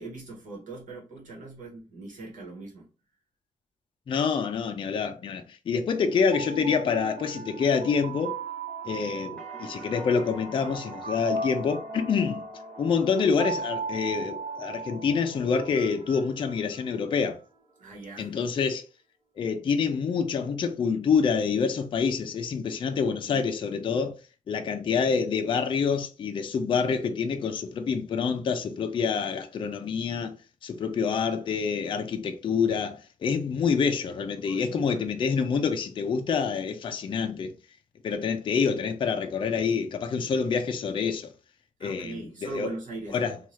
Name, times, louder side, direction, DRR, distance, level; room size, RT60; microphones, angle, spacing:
voice 1, 0.0-2.9 12.2-12.3 17.8-18.3 22.6-23.4 34.4-35.1 41.8-43.4, right 2 dB, 65° right, 1.2 m, -41 dB
voice 2, 4.1-8.4 8.8-12.4 12.8-17.4 18.2-18.8 19.4-24.2 24.5-30.3 30.6-37.5 38.0-41.3 41.8-42.7 43.1-43.4, left 5 dB, 35° left, 0.4 m, -27 dB
sound 1, 6.1-17.2, right 3 dB, 45° right, 0.7 m, -37 dB
sound 2, 9.4-17.3 17.6-18.3, equal, 5° left, 1.0 m, -49 dB
2.7 x 2.3 x 3.1 m
wide cardioid pair, 155°, 14 cm